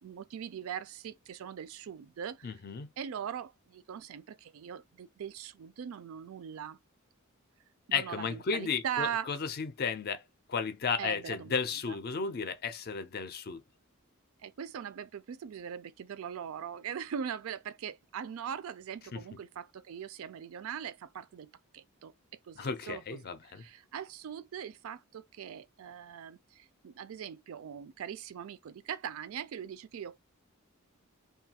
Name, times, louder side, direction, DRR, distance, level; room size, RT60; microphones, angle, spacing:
voice 1, 0.0-2.5 3.0-6.8 7.9-9.3 11.0-11.6 11.9-12.0 14.4-22.1 22.5-23.2 23.5-30.2, right 8 dB, 70° right, 0.3 m, -41 dB
voice 2, 2.4-2.9 7.9-10.2 10.5-13.6 19.1-19.2 22.6-23.7, left 5 dB, 45° left, 0.4 m, -34 dB
2.5 x 2.3 x 2.8 m
head